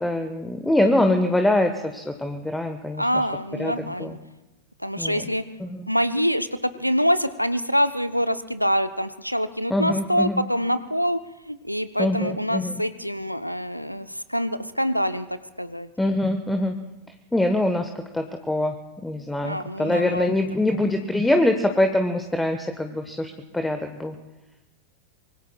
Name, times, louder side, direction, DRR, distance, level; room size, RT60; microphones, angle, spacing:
voice 1, 0.0-3.0 3.6-3.7 4.0-4.2 5.0-5.3 5.6-5.7 9.7-10.4 12.0-12.7 16.0-16.7 17.3-17.9 18.1-18.7 19.0-24.1, left 1 dB, 5° left, 6 dB, 1.2 m, -23 dB
voice 2, 3.0-4.2 4.8-5.4 5.9-11.2 11.5-15.9 19.4-20.4 20.7-20.8, equal, 90° left, 12 dB, 0.8 m, -25 dB
25.5 x 24.5 x 2.3 m, 1.0 s
figure-of-eight pair, 90°, 0 cm